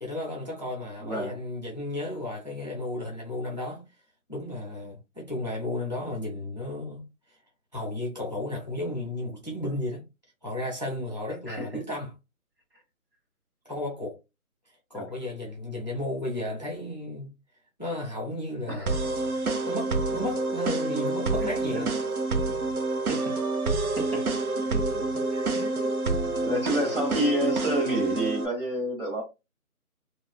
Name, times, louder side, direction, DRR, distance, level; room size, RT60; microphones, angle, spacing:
voice 1, 0.0-3.8 4.3-7.0 7.3-7.4 7.7-10.0 10.4-12.1 13.7-14.2 14.9-17.3 17.8-18.9 19.7-22.0 22.3-22.6 25.3-25.7, left 1 dB, 30° left, 0.6 m, -33 dB
voice 2, 1.0-1.4 11.5-11.7 14.9-15.1 18.7-18.9 23.1-23.3 24.0-24.3 24.6-25.0 25.5-25.9 26.4-29.2, right 1 dB, 40° right, 1.2 m, -29 dB
sound 1, 18.9-28.5, right 3 dB, 80° right, 0.7 m, -28 dB
2.4 x 2.2 x 2.3 m
figure-of-eight pair, 170°, 44 cm